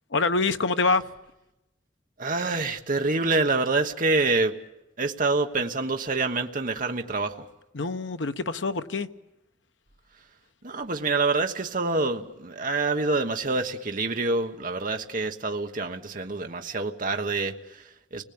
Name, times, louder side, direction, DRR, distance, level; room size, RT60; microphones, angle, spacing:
voice 1, 0.1-1.1 7.7-9.1, left 3 dB, 80° left, 1.0 m, -25 dB
voice 2, 2.2-4.6 5.0-7.5 10.6-18.2, right 3 dB, 45° right, 1.2 m, -26 dB
30.0 x 21.0 x 8.7 m
head